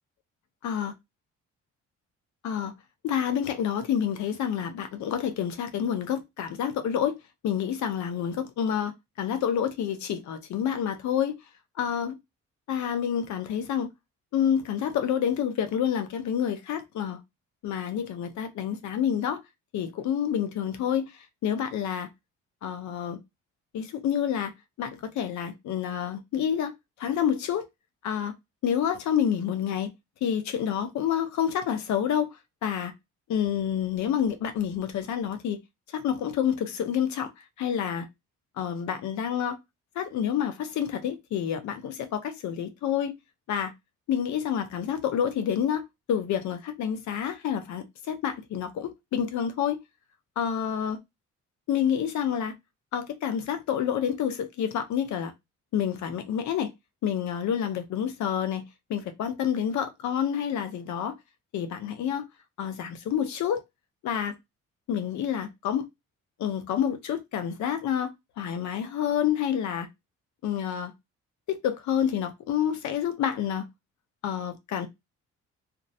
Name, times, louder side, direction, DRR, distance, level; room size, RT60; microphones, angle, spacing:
voice 1, 3.0-7.2 7.4-8.9 9.2-11.3 11.8-12.2 12.7-13.9 14.3-17.2 17.6-19.4 19.7-22.1 22.6-23.2 23.7-24.5 24.8-26.7 27.0-27.7 28.0-28.3 28.6-29.9 30.2-32.3 32.6-32.9 33.3-35.6 35.9-37.3 37.6-38.1 38.6-39.6 40.0-43.1 43.5-43.7 44.1-49.8 50.4-51.0 51.7-52.5 52.9-55.3 55.7-56.7 57.0-61.2 61.5-62.2 62.6-63.6 64.0-64.3 64.9-65.9 66.4-69.9 70.4-70.9 71.5-73.7 74.2-74.9, left 9 dB, 70° left, 0.6 m, -28 dB
2.5 x 2.0 x 2.7 m
cardioid pair, 90°, 30 cm